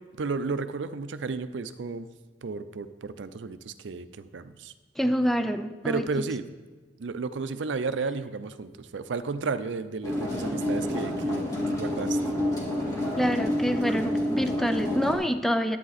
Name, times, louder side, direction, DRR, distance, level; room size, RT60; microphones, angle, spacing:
voice 1, 0.2-2.1 2.4-4.7 5.8-6.4 7.0-12.2, right 4 dB, 85° right, 12 dB, 0.5 m, -33 dB
voice 2, 5.0-6.0 13.1-15.8, equal, ahead, 9 dB, 0.3 m, -26 dB
sound 1, 10.0-15.2, left 1 dB, 20° left, 1.9 m, -28 dB
10.5 x 8.7 x 4.1 m, 1.3 s
head